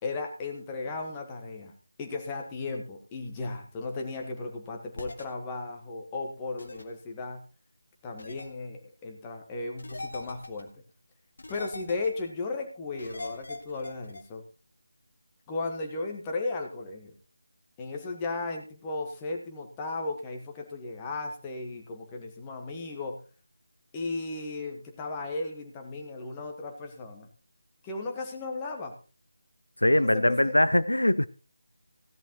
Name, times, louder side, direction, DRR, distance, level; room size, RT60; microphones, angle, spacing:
voice 1, 0.0-7.4 8.0-10.7 11.5-14.4 15.5-17.1 17.8-23.2 23.9-27.3 27.8-28.9 29.9-30.5, left 3 dB, 15° left, 1.5 m, -35 dB
sound 1, 5.0-5.2 6.6-6.8 8.2-8.5 9.8-10.6 11.4-12.2 13.0-14.2, left 2 dB, 50° left, 1.9 m, -41 dB
voice 2, 29.8-31.3, left 1 dB, 75° left, 0.5 m, -22 dB
16.5 x 11.0 x 3.0 m
figure-of-eight pair, 160°, 0 cm